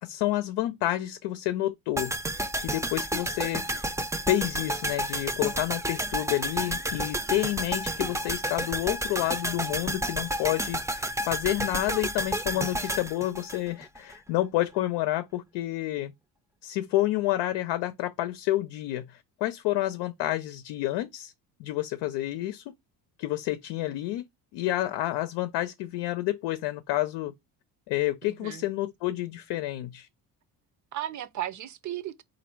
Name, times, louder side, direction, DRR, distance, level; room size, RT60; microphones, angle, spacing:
voice 1, 0.0-2.1 2.6-3.9 4.3-16.1 16.6-21.3 21.6-22.7 23.2-24.3 24.5-27.3 27.9-30.1, left 15 dB, 85° left, 0.6 m, -29 dB
sound 1, 2.0-14.1 14.4-14.5, right 1 dB, 5° right, 0.5 m, -31 dB
voice 2, 12.5-12.9 28.2-28.7 30.9-32.2, right 12 dB, 45° right, 0.6 m, -36 dB
4.0 x 2.7 x 4.4 m
cardioid pair, 95°, 40 cm